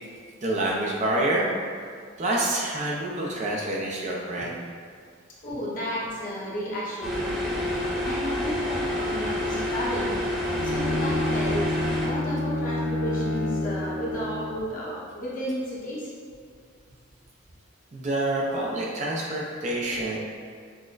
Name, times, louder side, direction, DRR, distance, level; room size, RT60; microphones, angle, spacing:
voice 1, 0.4-1.5 2.2-4.6 17.9-20.2, right 1 dB, 35° right, -3 dB, 0.4 m, -27 dB
voice 2, 5.4-16.1, equal, 40° left, -7 dB, 0.8 m, -33 dB
sound 1, 7.0-12.1, left 1 dB, ahead, 0.7 m, -28 dB
Bowed string instrument, 10.5-14.7, left 1 dB, 85° left, 0.4 m, -29 dB
6.0 x 2.0 x 2.4 m, 2.1 s
head